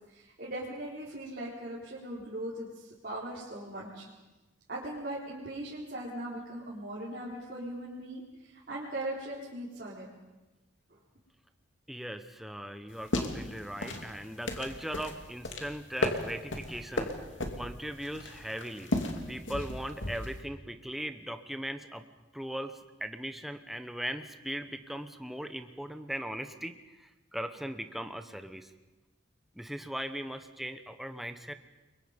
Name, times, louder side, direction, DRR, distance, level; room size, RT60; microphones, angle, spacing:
voice 1, 0.1-4.1 4.7-10.1, right 1 dB, 50° right, -7 dB, 4.1 m, -39 dB
voice 2, 11.9-17.1 17.6-18.9 19.3-22.0 22.3-28.7 29.6-31.5, equal, ahead, 8 dB, 1.0 m, -39 dB
sound 1, 12.9-20.4, left 1 dB, 75° left, 2.6 m, -35 dB
29.5 x 23.0 x 5.3 m, 1.1 s
head